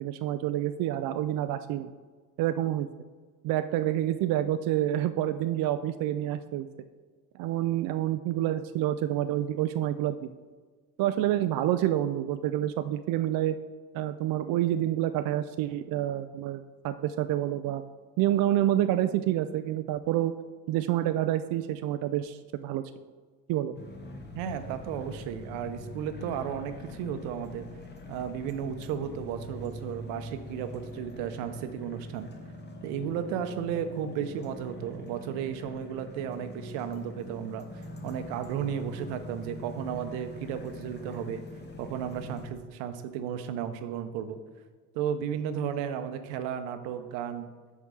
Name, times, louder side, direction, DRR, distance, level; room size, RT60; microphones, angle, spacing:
voice 1, 0.0-1.9 2.4-2.9 3.4-6.7 7.3-10.3 11.0-13.6 13.9-17.8 18.2-20.3 20.7-22.8 23.5-23.7, right 12 dB, 55° right, 10 dB, 0.4 m, -28 dB
sound 1, 23.7-42.5, left 1 dB, 25° left, 1.2 m, -43 dB
voice 2, 24.3-27.7 28.1-32.3 32.8-37.7 38.0-41.4 41.8-44.4 44.9-47.5, right 8 dB, 75° right, 9 dB, 0.9 m, -34 dB
5.5 x 4.7 x 6.3 m, 1.5 s
supercardioid pair, 90°, 43 cm